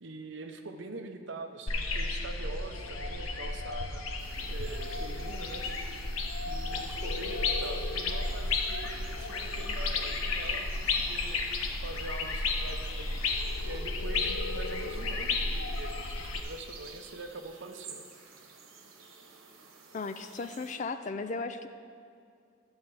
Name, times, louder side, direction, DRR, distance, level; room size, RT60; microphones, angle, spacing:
voice 1, 0.0-4.1 4.3-5.7 6.4-11.4 11.8-13.2 13.6-18.0, right 2 dB, 60° right, 5 dB, 0.7 m, -44 dB
sound 1, 1.7-16.4, left 3 dB, 85° left, 0.8 m, -33 dB
sound 2, 4.2-20.8, right 5 dB, 80° right, 1.1 m, -53 dB
voice 2, 19.9-21.7, left 3 dB, 35° left, 8 dB, 0.4 m, -36 dB
11.5 x 4.3 x 7.8 m, 2.3 s
head